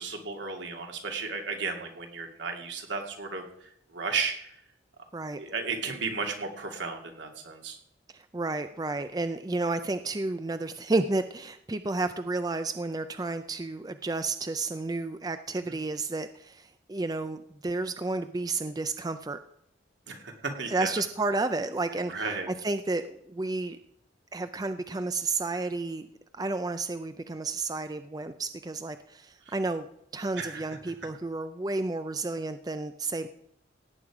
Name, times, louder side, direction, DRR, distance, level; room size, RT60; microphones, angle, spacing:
voice 1, 0.0-3.4 3.9-4.5 5.4-7.8 15.7-15.8 20.1-20.9 22.1-22.5 29.5-29.6 30.3-30.8, right 4 dB, 75° right, 3 dB, 2.5 m, -34 dB
voice 2, 8.1-19.4 20.7-23.8 24.3-26.1 26.3-29.9 30.1-33.3, right 3 dB, 20° right, 10 dB, 0.4 m, -31 dB
17.0 x 9.0 x 4.9 m, 0.74 s
head